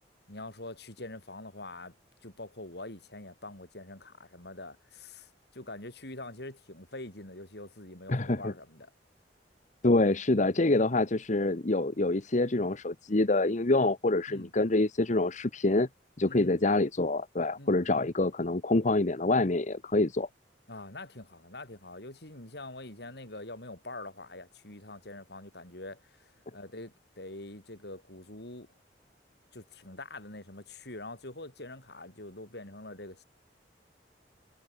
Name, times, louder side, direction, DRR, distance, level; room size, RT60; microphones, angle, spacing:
voice 1, 0.3-1.9 2.2-8.9 14.3-14.5 16.3-16.6 17.6-18.1 20.7-28.7 29.5-33.2, left 2 dB, 65° left, 6.5 m, -45 dB
voice 2, 8.1-8.5 9.8-15.9 16.2-20.3, left 2 dB, 45° left, 1.1 m, -26 dB
head